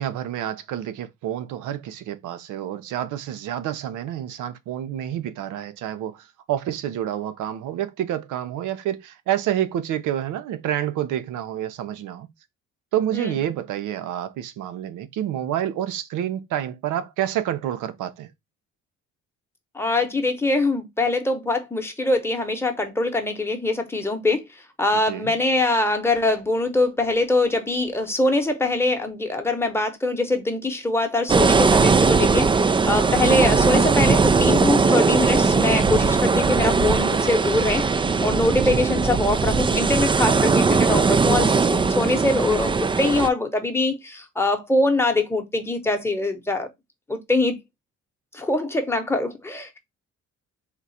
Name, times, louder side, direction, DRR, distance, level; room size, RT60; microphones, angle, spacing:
voice 1, 0.0-6.2 6.5-12.3 12.9-18.3 24.9-25.3 33.2-33.3 38.6-39.0, right 11 dB, 85° right, 0.7 m, -28 dB
voice 2, 19.7-24.4 24.8-37.9 38.2-46.7 47.1-47.6 48.3-49.8, left 2 dB, 10° left, 0.9 m, -23 dB
sound 1, 31.3-43.3, right 4 dB, 15° right, 0.3 m, -19 dB
3.7 x 2.4 x 4.1 m
cardioid pair, 90°, 30 cm